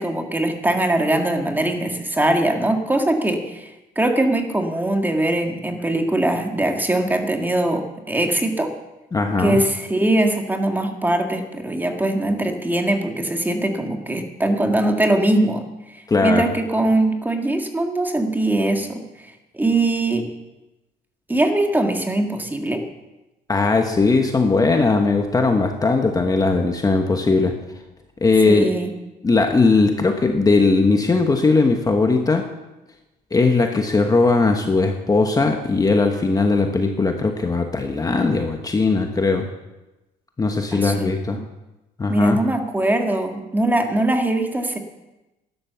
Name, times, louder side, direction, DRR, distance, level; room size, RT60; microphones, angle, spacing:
voice 1, 0.0-3.7 4.0-8.7 9.4-15.6 15.9-19.0 19.5-20.3 21.3-22.8 28.5-28.9 40.7-41.4 42.1-44.8, right 1 dB, 10° right, 4 dB, 1.8 m, -21 dB
voice 2, 9.1-9.6 16.1-16.5 23.5-27.5 28.2-28.7 29.2-32.5 33.3-39.5 40.4-41.4 42.0-42.4, left 3 dB, 20° left, 4 dB, 1.2 m, -19 dB
12.5 x 11.0 x 7.0 m, 1.0 s
cardioid pair, 110°, 17 cm